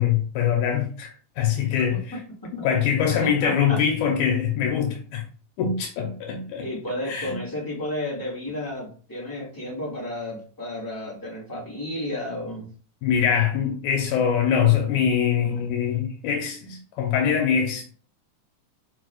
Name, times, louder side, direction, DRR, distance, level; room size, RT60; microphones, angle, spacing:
voice 1, 0.0-2.2 2.6-5.2 5.6-6.7 7.1-7.4 13.0-17.8, left 8 dB, 80° left, 2.1 m, -23 dB
voice 2, 1.6-2.5 3.2-3.8 6.6-12.7, left 1 dB, 10° left, 1.1 m, -33 dB
4.7 x 4.7 x 2.3 m
omnidirectional pair, 3.5 m